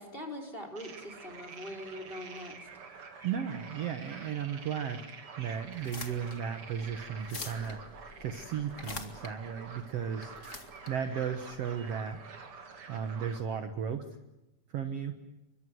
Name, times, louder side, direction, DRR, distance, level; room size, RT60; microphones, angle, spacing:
voice 1, 0.0-2.7, left 1 dB, 15° left, 5 dB, 4.2 m, -42 dB
sound 1, 0.8-13.4, right 5 dB, 40° right, 2.6 m, -48 dB
voice 2, 3.2-7.9 8.2-10.3 10.9-12.2 12.9-14.1 14.7-15.2, right 7 dB, 70° right, 7 dB, 1.5 m, -35 dB
sound 2, 5.7-12.2, left 3 dB, 30° left, 1.5 m, -46 dB
29.0 x 24.0 x 7.9 m, 0.97 s
omnidirectional pair, 4.6 m